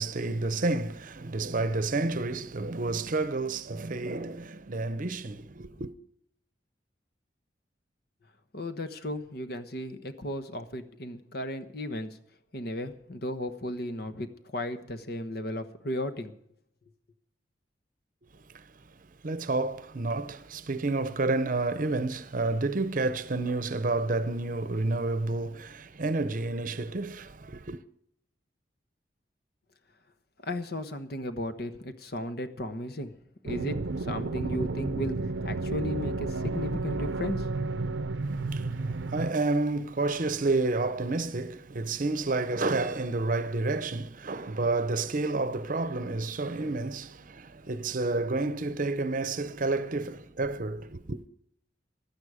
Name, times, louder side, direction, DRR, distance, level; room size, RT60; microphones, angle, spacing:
voice 1, 0.0-5.9 18.5-18.7 19.2-27.8 38.2-51.2, right 3 dB, 50° right, 0.7 m, -30 dB
voice 2, 8.5-12.2 12.5-16.3 30.4-33.2 33.4-37.5, left 1 dB, 60° left, 1.2 m, -35 dB
sound 1, 33.5-39.3, right 3 dB, 90° right, 0.6 m, -32 dB
16.0 x 11.5 x 5.0 m
head